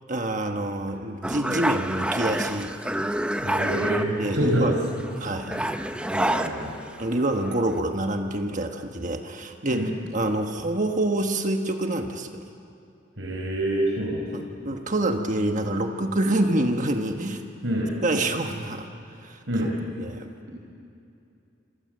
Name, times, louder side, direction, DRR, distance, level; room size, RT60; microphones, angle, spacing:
voice 1, 0.1-2.8 4.1-4.7 5.2-5.5 7.0-12.4 14.3-17.4 18.0-19.4 20.0-20.3, right 1 dB, 40° right, 4 dB, 1.3 m, -27 dB
sound 1, 1.2-4.4 4.7-7.1 7.4-7.8, right 1 dB, 5° right, 0.9 m, -28 dB
voice 2, 3.4-4.7 5.5-5.7 6.1-6.8 9.7-9.9 13.2-14.2 17.6-17.9 19.5-19.7, right 1 dB, 80° right, -2 dB, 4.7 m, -26 dB
26.5 x 26.5 x 7.8 m, 2.7 s
head